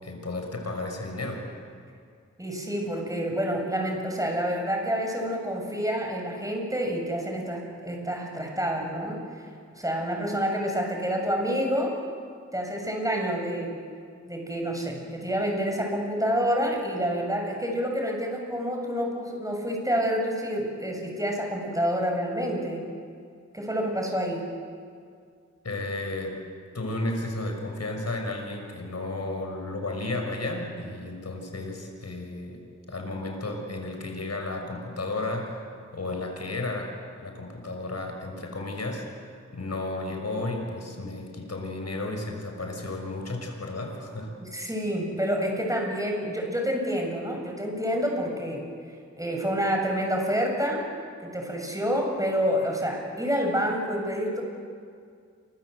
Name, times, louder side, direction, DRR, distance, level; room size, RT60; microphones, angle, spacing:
voice 1, 0.0-1.4 25.6-26.4 26.7-32.6 32.9-35.6 35.9-36.9 37.2-39.0 39.5-44.3, left 2 dB, 60° left, 2 dB, 6.0 m, -33 dB
voice 2, 2.4-9.2 9.8-11.9 12.5-13.7 14.3-22.8 23.5-24.5 44.4-48.6 49.2-50.8 51.2-54.4, equal, 10° right, 1 dB, 7.6 m, -28 dB
28.5 x 25.0 x 8.0 m, 2.2 s
wide cardioid pair, 60°, 29 cm